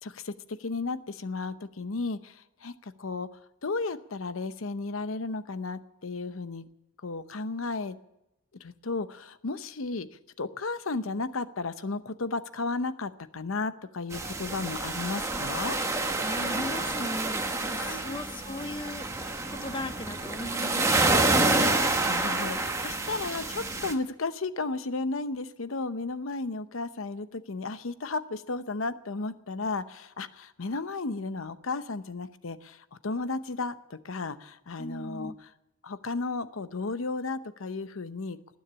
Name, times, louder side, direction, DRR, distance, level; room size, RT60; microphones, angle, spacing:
voice 1, 0.0-6.6 7.0-8.0 8.6-10.1 10.4-15.8 17.8-18.2 21.6-35.3 35.8-38.4, left 3 dB, 75° left, 12 dB, 0.8 m, -34 dB
sound 1, 14.1-23.9, right 2 dB, 15° right, 1.2 m, -28 dB
voice 2, 16.2-19.1 19.5-20.9 34.8-35.4, left 1 dB, 25° left, 11 dB, 0.7 m, -37 dB
19.0 x 7.2 x 9.9 m, 0.92 s
head